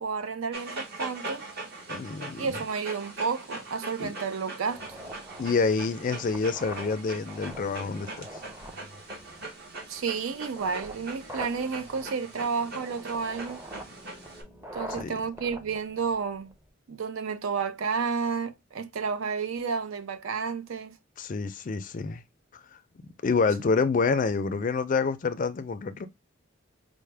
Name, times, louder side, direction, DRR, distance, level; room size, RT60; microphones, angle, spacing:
voice 1, 0.0-1.4 2.4-5.0 9.9-13.6 14.7-16.5 16.9-21.0, right 5 dB, 75° right, 0.5 m, -31 dB
Dog, 0.5-14.4, right 2 dB, 50° right, 1.0 m, -41 dB
voice 2, 1.9-2.6 4.0-4.1 5.4-8.3 14.9-15.1 21.2-22.2 22.7-22.8 23.2-26.1, left 4 dB, 40° left, 0.4 m, -27 dB
sound 1, 4.7-16.7, equal, 10° right, 0.6 m, -45 dB
4.3 x 2.1 x 3.3 m
head